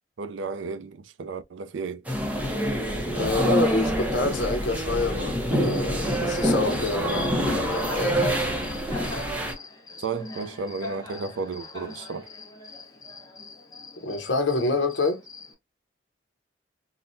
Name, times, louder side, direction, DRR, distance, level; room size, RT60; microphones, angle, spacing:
voice 1, 0.2-2.0 10.0-12.3, right 4 dB, 90° right, 0.4 m, -33 dB
sound 1, 2.1-9.5, equal, 10° right, 0.6 m, -26 dB
voice 2, 3.1-8.5 14.0-15.2, left 2 dB, 80° left, 0.8 m, -27 dB
Cricket, 5.5-15.5, left 3 dB, 20° left, 0.8 m, -42 dB
3.7 x 2.1 x 2.5 m
head